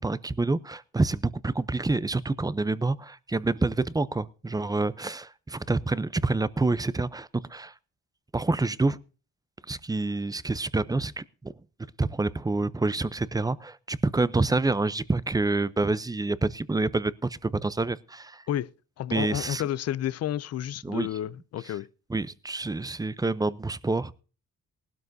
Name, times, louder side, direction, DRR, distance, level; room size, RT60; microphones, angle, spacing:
voice 1, 0.0-7.7 8.3-9.0 9.7-11.5 12.0-18.4 19.1-19.6 20.8-21.1 22.1-24.2, right 3 dB, 10° right, 0.6 m, -27 dB
voice 2, 19.0-21.9, left 11 dB, 55° left, 0.5 m, -31 dB
19.0 x 12.5 x 2.7 m
cardioid pair, 90°, 30 cm